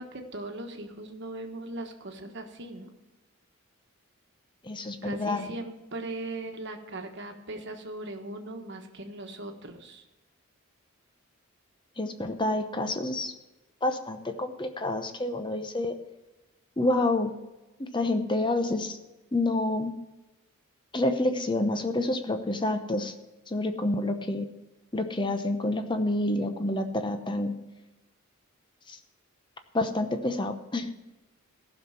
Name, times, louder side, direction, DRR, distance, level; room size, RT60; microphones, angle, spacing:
voice 1, 0.0-2.9 5.0-10.0, right 2 dB, 55° right, 5 dB, 1.3 m, -39 dB
voice 2, 4.6-5.5 12.0-13.3 13.8-15.9 16.8-17.3 17.8-19.0 19.3-19.9 20.9-23.1 23.5-24.5 24.9-27.6 28.9-29.0 29.7-30.9, left 2 dB, 20° left, 7 dB, 0.8 m, -28 dB
15.0 x 6.1 x 5.8 m, 1.1 s
head